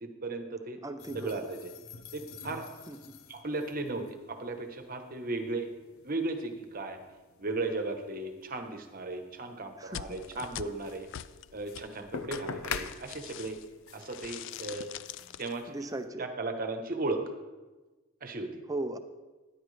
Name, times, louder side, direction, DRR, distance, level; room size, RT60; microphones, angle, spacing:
voice 1, 0.0-0.8 1.1-1.7 2.1-2.7 3.3-5.7 6.0-7.0 7.4-11.1 11.5-13.6 13.9-14.9 15.4-15.8 16.2-17.2 18.2-18.6, right 2 dB, 45° right, 6 dB, 1.1 m, -36 dB
voice 2, 0.8-1.4 2.9-3.0 9.8-10.4 15.7-16.3 18.7-19.0, right 2 dB, 15° right, 9 dB, 0.6 m, -37 dB
sound 1, 1.0-16.1, left 6 dB, 90° left, 0.7 m, -47 dB
sound 2, 9.9-13.7 14.0-15.5, left 10 dB, 60° left, 0.3 m, -43 dB
13.0 x 10.5 x 3.3 m, 1.2 s
head